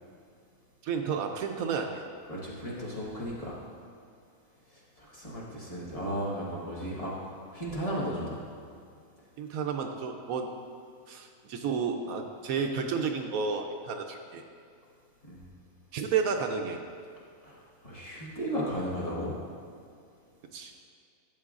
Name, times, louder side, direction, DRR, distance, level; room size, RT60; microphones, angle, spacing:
voice 1, 0.8-2.0 9.4-10.5 11.1-14.4 15.9-16.8 20.5-20.7, right 5 dB, 75° right, 4 dB, 1.0 m, -31 dB
voice 2, 2.3-3.6 5.0-7.1 7.5-8.4 15.2-15.5 17.4-19.3, equal, 25° left, -6 dB, 1.3 m, -35 dB
12.0 x 7.0 x 2.4 m, 2.3 s
omnidirectional pair, 1.5 m